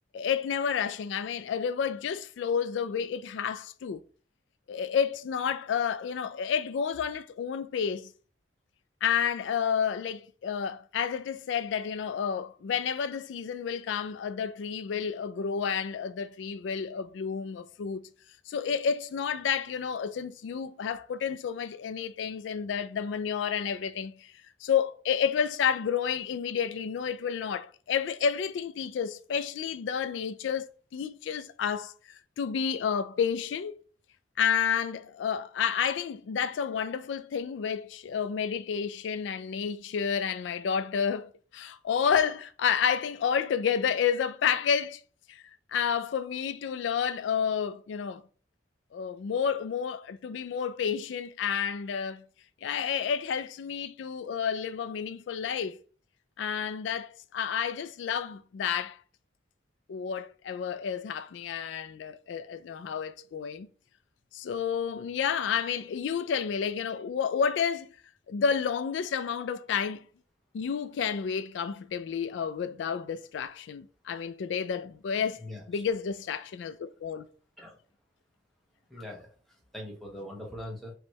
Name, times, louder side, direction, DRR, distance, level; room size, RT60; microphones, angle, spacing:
voice 1, 0.1-4.0 4.7-8.1 9.0-18.1 18.5-24.3 24.6-33.8 34.4-45.0 45.3-45.4 45.7-48.2 48.9-52.2 52.6-55.8 56.4-59.0 59.9-63.7 64.3-67.9 68.3-70.1 70.5-75.4 75.7-77.3, left 7 dB, 85° left, 0.3 m, -30 dB
voice 2, 75.4-75.8 77.6-77.8 78.9-80.9, left 1 dB, ahead, 1.1 m, -42 dB
3.1 x 3.0 x 4.5 m
head